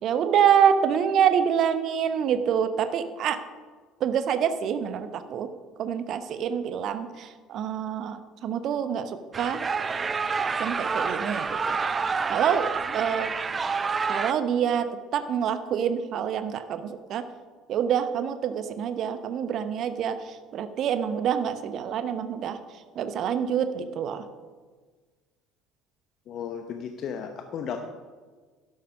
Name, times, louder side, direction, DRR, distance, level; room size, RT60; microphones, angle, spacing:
voice 1, 0.0-3.4 4.0-5.5 5.8-9.6 10.6-11.8 12.3-13.3 14.1-17.3 17.7-22.6 22.9-24.3, right 8 dB, 45° right, 11 dB, 0.9 m, -26 dB
sound 1, 9.3-14.3, right 5 dB, 25° right, 0.5 m, -28 dB
voice 2, 26.3-27.8, left 7 dB, 45° left, 6 dB, 0.9 m, -34 dB
12.0 x 10.5 x 5.4 m, 1.4 s
figure-of-eight pair, 60°, 0 cm